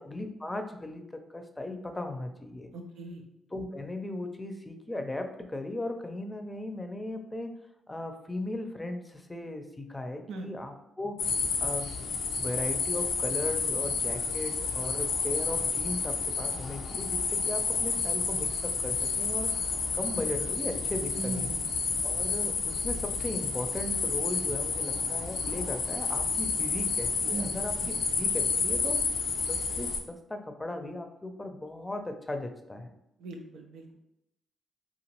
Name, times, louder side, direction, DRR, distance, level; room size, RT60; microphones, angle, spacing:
voice 1, 0.0-2.7 3.5-7.5 7.9-11.2 11.6-11.9 12.4-19.5 19.9-21.5 22.0-29.0 29.5-32.9, left 1 dB, 20° left, 6 dB, 0.5 m, -37 dB
voice 2, 2.7-3.2 10.3-10.5 21.2-21.8 27.3-27.9 33.2-34.0, right 2 dB, 80° right, 4 dB, 0.4 m, -39 dB
sound 1, 11.2-30.0, left 4 dB, 70° left, 0.4 m, -30 dB
2.9 x 2.5 x 2.9 m, 0.82 s
supercardioid pair, 50°, 0 cm